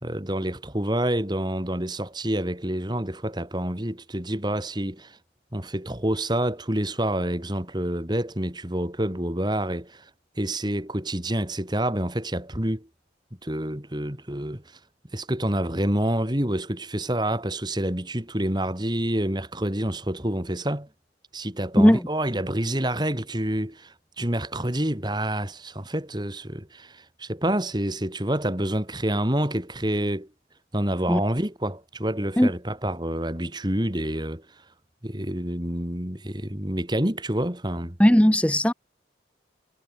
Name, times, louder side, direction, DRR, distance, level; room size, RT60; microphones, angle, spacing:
voice 1, 0.0-5.2 5.5-10.1 10.4-12.9 13.4-14.6 15.1-20.9 21.3-30.3 30.7-34.4 35.0-38.0, right 1 dB, 25° right, 2.9 m, -28 dB
voice 2, 38.0-38.7, equal, 5° left, 0.9 m, -17 dB
head